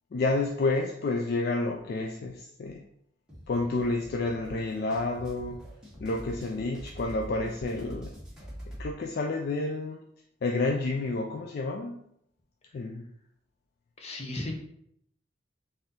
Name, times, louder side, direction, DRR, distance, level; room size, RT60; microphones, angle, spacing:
voice 1, 0.1-2.8 3.5-5.6 6.0-8.1 8.8-10.0 10.4-12.1 12.7-13.1, left 2 dB, 55° left, 2 dB, 0.3 m, -30 dB
sound 1, 3.3-8.9, equal, 5° right, 1.1 m, -44 dB
voice 2, 14.0-14.5, left 2 dB, 35° left, 1 dB, 0.7 m, -36 dB
4.1 x 2.6 x 3.7 m, 0.73 s
head